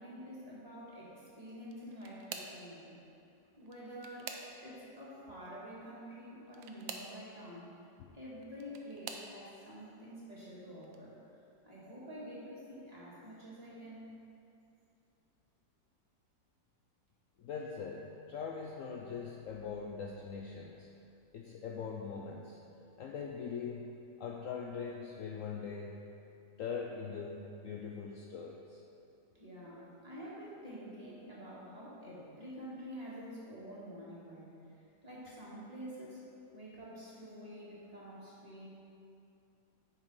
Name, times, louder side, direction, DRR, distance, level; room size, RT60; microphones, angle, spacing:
voice 1, 0.0-3.0 3.6-7.7 8.1-11.2 11.6-14.1 29.3-34.6 35.0-36.3 36.5-38.7, equal, 20° right, -7 dB, 1.7 m, -48 dB
sound 1, 1.6-2.7 3.6-4.9 6.5-7.2 8.2-9.3 10.1-10.4 10.8-11.0 12.3-12.4, right 6 dB, 85° right, 1.4 m, -47 dB
voice 2, 17.4-20.9 21.3-22.6 23.0-23.9 24.2-26.0 26.6-28.8, left 5 dB, 80° left, 0 dB, 0.7 m, -42 dB
9.2 x 5.7 x 4.7 m, 2.7 s
omnidirectional pair, 2.0 m